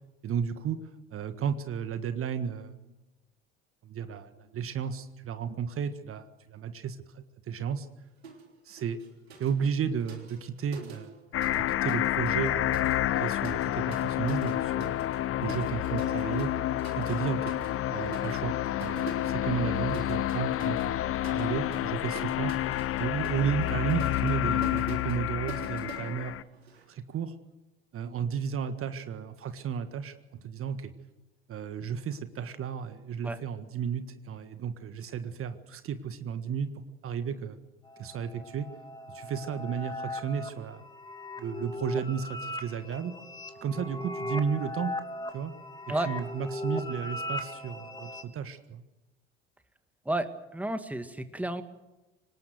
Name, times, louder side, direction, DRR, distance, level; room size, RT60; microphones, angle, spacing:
voice 1, 0.2-0.8 1.1-2.7 3.8-7.9 8.6-9.0 9.4-11.2 11.6-12.8 13.2-15.0 15.4-16.5 17.0-17.5 17.9-18.5 18.8-21.0 21.3-22.5 23.0-26.4 26.9-27.3 27.9-30.1 30.4-30.9 31.5-36.7 37.0-37.6 38.0-38.7 39.1-40.8 41.4-43.1 43.6-44.9 45.3-45.5 45.9-48.8, right 7 dB, 45° right, 10 dB, 1.7 m, -33 dB
sound 1, 8.2-8.5 8.8-11.6 11.9-26.8, right 4 dB, 90° right, 3.4 m, -47 dB
sound 2, 11.3-26.4, left 13 dB, 45° left, 0.9 m, -29 dB
sound 3, 37.9-48.2, left 1 dB, 15° left, 2.8 m, -38 dB
voice 2, 50.5-51.6, right 1 dB, 5° right, 9 dB, 2.0 m, -31 dB
25.0 x 19.5 x 7.9 m, 1.0 s
hypercardioid pair, 65°, 31 cm